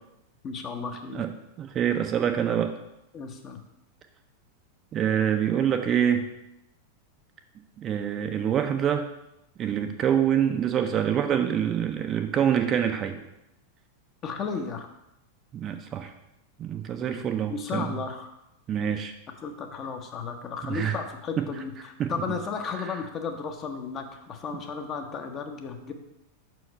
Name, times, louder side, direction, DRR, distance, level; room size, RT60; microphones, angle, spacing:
voice 1, 0.4-1.2 3.1-3.6 14.2-14.9 17.5-18.3 19.4-25.9, left 5 dB, 30° left, 5 dB, 0.9 m, -34 dB
voice 2, 1.6-2.7 4.9-6.3 7.8-9.1 9.6-13.2 15.5-16.1 16.6-17.9 18.7-19.1 20.6-20.9 21.4-21.5 22.0-22.1, right 9 dB, 30° right, 6 dB, 0.6 m, -25 dB
6.0 x 4.7 x 5.3 m, 0.87 s
figure-of-eight pair, 90°, 0 cm